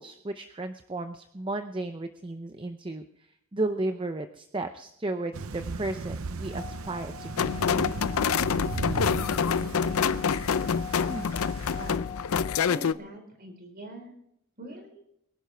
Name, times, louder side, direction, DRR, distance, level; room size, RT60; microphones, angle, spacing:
voice 1, 0.0-7.5 11.1-11.2, right 2 dB, 25° right, 8 dB, 0.6 m, -34 dB
Thunder / Rain, 5.3-12.0, right 3 dB, 80° right, 0.7 m, -37 dB
Singing / Glass, 6.5-13.0, left 8 dB, 70° left, 2.4 m, -44 dB
sound 1, 7.4-12.9, left 6 dB, 90° left, 0.5 m, -26 dB
voice 2, 11.7-12.1 12.7-14.1 14.6-15.0, right 1 dB, 45° right, 3 dB, 4.4 m, -43 dB
23.5 x 11.5 x 3.4 m, 0.76 s
head